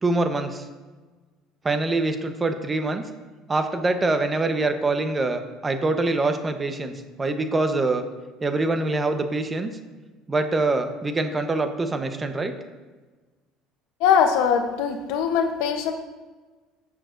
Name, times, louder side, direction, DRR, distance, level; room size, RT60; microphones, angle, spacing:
voice 1, 0.0-0.7 1.6-3.0 3.5-8.0 8.4-9.7 10.3-12.5, right 2 dB, 25° right, 7 dB, 1.0 m, -24 dB
voice 2, 14.0-15.9, left 7 dB, 75° left, 6 dB, 0.9 m, -21 dB
14.0 x 7.3 x 2.6 m, 1.3 s
supercardioid pair, 90°, 0 cm